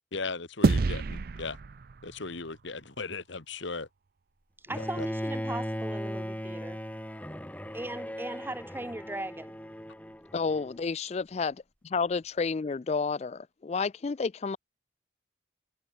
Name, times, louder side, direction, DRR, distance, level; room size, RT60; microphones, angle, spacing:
voice 1, 0.1-1.6 2.0-3.9 4.8-5.0, left 4 dB, 75° left, 1.6 m, -37 dB
sound 1, 0.6-3.2, right 3 dB, 50° right, 0.5 m, -29 dB
Bowed string instrument, 4.7-10.8, equal, 10° left, 4.0 m, -37 dB
voice 2, 4.7-6.8 7.7-9.5, right 1 dB, 10° right, 1.6 m, -38 dB
voice 3, 10.3-14.6, left 4 dB, 35° left, 0.3 m, -31 dB
head